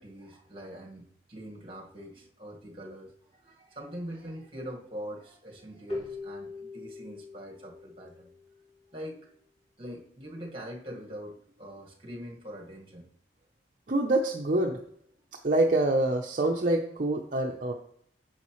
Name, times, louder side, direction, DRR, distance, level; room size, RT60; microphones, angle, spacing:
voice 1, 0.0-8.3 8.9-9.3 9.8-13.1, equal, 30° right, 0 dB, 1.7 m, -43 dB
Keyboard (musical), 5.9-9.1, left 2 dB, 35° left, 2.5 m, -42 dB
voice 2, 13.9-14.8 15.4-17.7, right 2 dB, 45° right, 0 dB, 0.7 m, -26 dB
9.8 x 6.4 x 3.1 m, 0.69 s
head